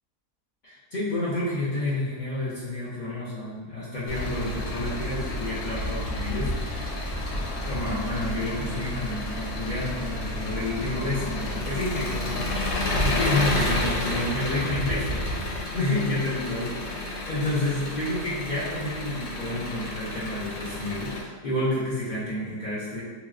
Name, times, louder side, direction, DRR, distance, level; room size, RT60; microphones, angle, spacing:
voice 1, 0.6-6.9 7.6-12.4 12.9-23.0, left 1 dB, 90° left, -9 dB, 0.4 m, -30 dB
Engine, 4.1-21.2, left 1 dB, 75° left, 1.1 m, -30 dB
3.0 x 2.8 x 2.4 m, 1.4 s
omnidirectional pair, 1.7 m